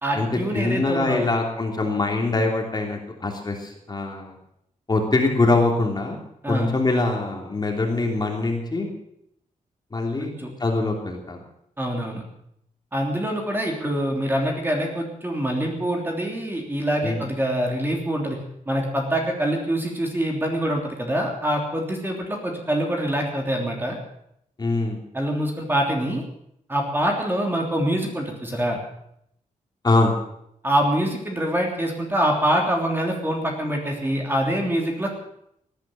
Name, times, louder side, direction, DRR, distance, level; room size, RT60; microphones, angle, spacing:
voice 1, 0.0-1.3 6.4-6.7 10.2-10.5 11.8-12.2 12.9-18.4 18.7-24.0 25.1-26.2 26.7-28.8 30.6-35.1, right 1 dB, 15° right, 1 dB, 3.2 m, -25 dB
voice 2, 0.5-4.3 4.9-6.2 6.4-8.9 9.9-10.3 10.6-11.4 17.0-17.3 24.6-25.0 29.8-30.2, left 2 dB, 30° left, 2 dB, 3.1 m, -23 dB
18.0 x 10.5 x 7.5 m, 0.74 s
wide cardioid pair, 120°, 14 cm